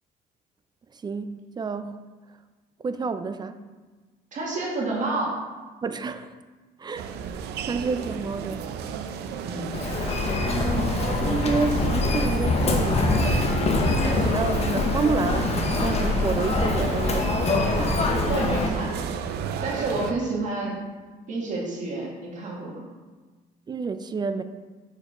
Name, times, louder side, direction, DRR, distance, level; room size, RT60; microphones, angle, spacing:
voice 1, 1.0-2.0 2.8-3.6 5.8-6.4 6.8-7.1 7.7-8.7 10.4-13.3 14.0-18.0 18.7-18.8 23.7-24.4, right 4 dB, 25° right, 11 dB, 0.4 m, -29 dB
voice 2, 4.3-5.4 9.4-9.7 18.3-19.0 19.6-20.8 21.3-22.8, right 2 dB, 45° right, -3 dB, 1.8 m, -29 dB
sound 1, 6.9-20.1, right 7 dB, 75° right, 0.6 m, -34 dB
Human voice, 9.7-18.7, left 2 dB, 40° left, 0.9 m, -24 dB
6.6 x 4.5 x 4.8 m, 1.3 s
cardioid pair, 110°, 17 cm